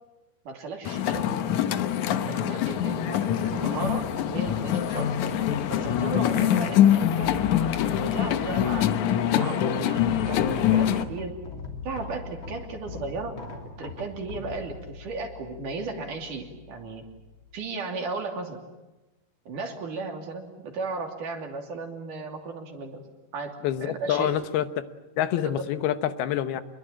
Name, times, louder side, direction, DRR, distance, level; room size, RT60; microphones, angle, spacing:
voice 1, 0.5-1.3 2.3-5.1 5.7-7.4 8.0-11.4 11.8-13.3 13.8-17.0 17.5-18.6 19.5-23.0 23.3-24.3 25.4-25.7, right 3 dB, 60° right, 4 dB, 4.2 m, -35 dB
sound 1, 0.8-11.0, left 10 dB, 65° left, 2.1 m, -24 dB
sound 2, 3.4-17.7, left 4 dB, 35° left, 3.5 m, -41 dB
voice 2, 23.6-24.9 25.2-26.6, left 11 dB, 85° left, 12 dB, 3.0 m, -27 dB
27.0 x 21.5 x 8.8 m, 1.0 s
omnidirectional pair, 4.4 m